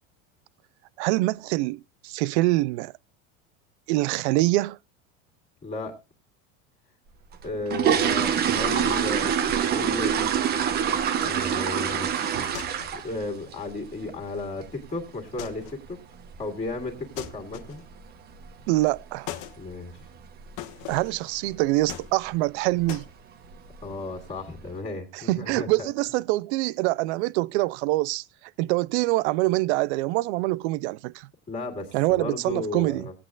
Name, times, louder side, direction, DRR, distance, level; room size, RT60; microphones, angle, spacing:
voice 1, 1.0-2.9 3.9-4.8 18.7-19.3 20.9-23.1 25.1-28.2 28.6-31.3 31.9-33.1, right 19 dB, 65° right, 0.5 m, -25 dB
voice 2, 5.6-5.9 7.4-10.4 11.2-16.0 16.4-17.8 19.6-20.1 23.8-25.9 31.5-33.1, left 2 dB, 20° left, 2.3 m, -34 dB
sound 1, 7.3-13.2 13.5-13.8 14.2-14.3 14.6-14.8 15.1-15.4 15.6-15.7 16.3-16.4 16.7-16.8 17.3-17.6 17.9-18.0 18.4-18.6 18.9-19.0 19.5-19.6 20.2-20.5 20.8-21.1 21.5-21.6 22.0-22.1 22.9-23.0 23.4-23.9 24.4-24.5, right 8 dB, 25° right, 0.8 m, -25 dB
sound 2, 12.5-13.1 15.4-15.9 17.2-18.0 19.3-19.6 20.6-21.2 21.9-22.5 22.9-23.1, left 11 dB, 55° left, 1.2 m, -39 dB
19.0 x 8.4 x 2.4 m
supercardioid pair, 160°, 36 cm